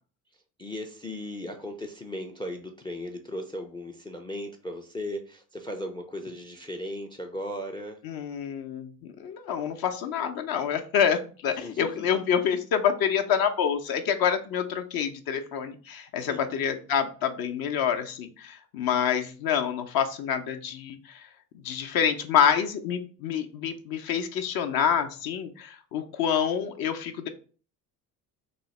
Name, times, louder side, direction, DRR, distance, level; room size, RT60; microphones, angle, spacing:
voice 1, 0.6-8.0 11.6-12.2 16.3-16.5, left 1 dB, 10° left, 6 dB, 0.3 m, -37 dB
voice 2, 8.0-21.3 21.6-27.3, left 8 dB, 55° left, 6 dB, 0.6 m, -27 dB
3.0 x 2.0 x 4.1 m, 0.40 s
supercardioid pair, 70°, 44 cm